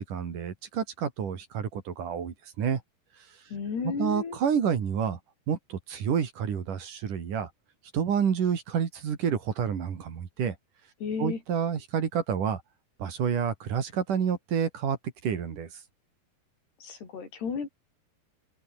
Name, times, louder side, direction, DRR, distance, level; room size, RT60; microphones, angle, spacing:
voice 1, 0.0-2.8 3.8-5.2 5.5-7.5 7.9-10.6 11.2-12.6 13.0-15.0 15.2-15.7, right 7 dB, 55° right, 4.0 m, -29 dB
voice 2, 3.5-4.4 11.0-11.4 16.8-17.7, left 6 dB, 85° left, 7.4 m, -33 dB
open air
omnidirectional pair, 4.6 m